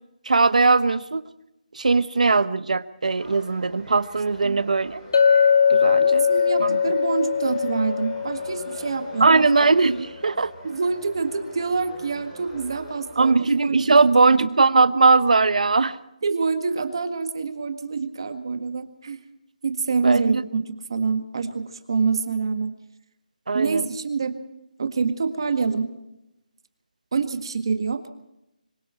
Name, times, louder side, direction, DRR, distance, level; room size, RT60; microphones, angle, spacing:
voice 1, 0.3-1.2 1.7-5.0 5.7-6.2 6.6-6.8 9.2-10.5 13.2-16.0 20.0-20.4 23.5-23.8, right 3 dB, 55° right, 13 dB, 1.1 m, -19 dB
sound 1, 3.1-13.1, equal, 15° left, 7.1 m, -44 dB
Chink clink, 5.1-9.6, left 6 dB, 30° left, 0.8 m, -21 dB
voice 2, 6.0-9.5 10.6-14.5 16.2-19.2 19.6-22.7 23.5-24.4 24.8-25.9 27.1-28.1, right 4 dB, 35° right, 8 dB, 1.8 m, -26 dB
26.0 x 22.5 x 4.5 m, 0.87 s
hypercardioid pair, 180°, 5 cm